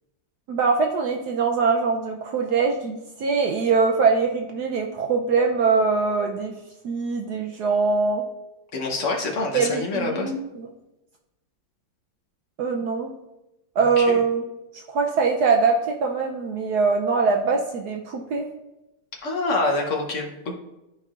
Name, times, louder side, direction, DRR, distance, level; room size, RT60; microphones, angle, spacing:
voice 1, 0.5-6.5 6.8-8.2 9.5-10.7 12.6-13.1 13.8-14.4 14.7-18.5, right 4 dB, 70° right, 2 dB, 1.0 m, -22 dB
voice 2, 8.7-10.3 14.0-14.2 19.2-20.5, left 2 dB, 55° left, 1 dB, 0.9 m, -26 dB
11.5 x 4.4 x 2.4 m, 0.96 s
omnidirectional pair, 2.1 m